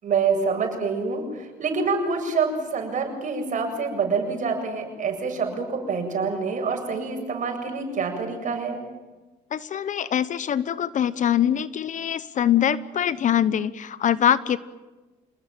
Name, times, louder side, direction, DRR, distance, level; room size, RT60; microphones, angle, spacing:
voice 1, 0.0-8.8, right 5 dB, 50° right, 4 dB, 7.7 m, -26 dB
voice 2, 9.5-14.6, left 10 dB, 50° left, 16 dB, 1.0 m, -23 dB
27.5 x 20.0 x 9.0 m, 1.2 s
cardioid pair, 110°, 17 cm